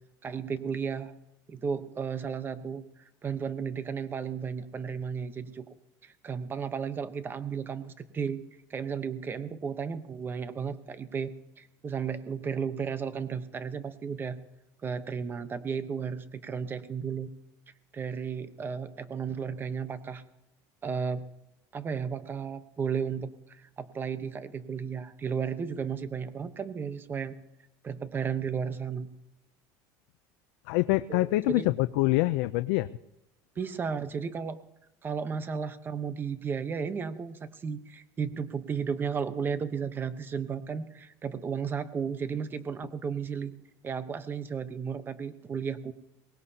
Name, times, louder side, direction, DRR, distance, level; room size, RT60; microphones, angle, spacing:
voice 1, 0.2-1.1 1.5-2.8 3.2-5.7 6.0-8.4 8.7-14.4 14.8-17.3 17.9-20.2 20.8-21.2 21.7-23.3 23.8-27.4 27.8-29.1 31.1-31.2 31.5-31.7 33.6-34.6 35.0-43.5 43.8-45.9, right 6 dB, 25° right, 11 dB, 1.0 m, -34 dB
voice 2, 30.7-32.9, left 19 dB, 80° left, 11 dB, 0.5 m, -25 dB
23.0 x 19.0 x 2.9 m, 0.89 s
cardioid pair, 140°, 9 cm